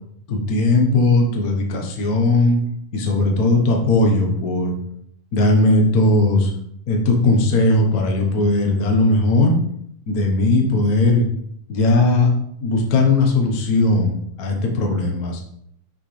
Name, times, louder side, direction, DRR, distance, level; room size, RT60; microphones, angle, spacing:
voice 1, 0.3-2.6 2.9-4.7 5.3-6.5 6.9-9.6 10.1-11.3 11.7-12.3 12.6-15.4, left 2 dB, 85° left, 1 dB, 0.7 m, -18 dB
6.5 x 6.0 x 3.3 m, 0.69 s
omnidirectional pair, 3.5 m